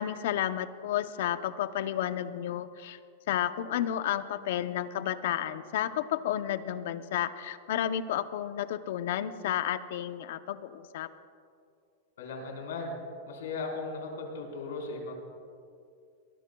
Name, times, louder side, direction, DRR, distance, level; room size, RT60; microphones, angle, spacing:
voice 1, 0.0-3.0 3.3-11.1, left 11 dB, 65° left, 12 dB, 0.7 m, -31 dB
voice 2, 12.2-12.9 13.3-15.1, left 3 dB, 90° left, 0 dB, 4.2 m, -37 dB
22.5 x 19.0 x 2.3 m, 2.4 s
supercardioid pair, 150°, 0 cm